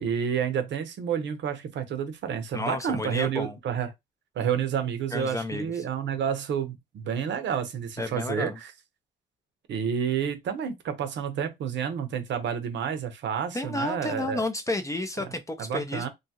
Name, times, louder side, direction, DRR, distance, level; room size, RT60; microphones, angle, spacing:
voice 1, 0.0-3.9 4.4-8.7 9.7-14.4 15.2-15.3 15.6-16.1, right 8 dB, 65° right, 0.7 m, -29 dB
voice 2, 2.5-3.6 5.1-5.8 8.0-8.6 13.5-16.1, left 2 dB, 15° left, 0.4 m, -31 dB
2.7 x 2.3 x 2.8 m
cardioid pair, 90°, 20 cm